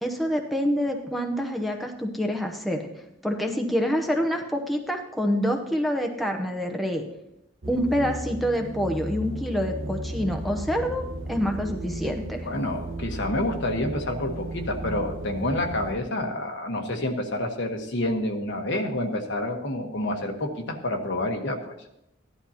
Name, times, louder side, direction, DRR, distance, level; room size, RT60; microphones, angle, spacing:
voice 1, 0.0-2.8 3.2-7.0 7.7-12.5, equal, ahead, 2 dB, 0.8 m, -27 dB
sound 1, 7.6-16.0, right 1 dB, 75° right, 1.3 m, -35 dB
voice 2, 12.4-21.7, left 1 dB, 60° left, 4 dB, 1.3 m, -28 dB
15.5 x 11.5 x 2.9 m, 0.81 s
head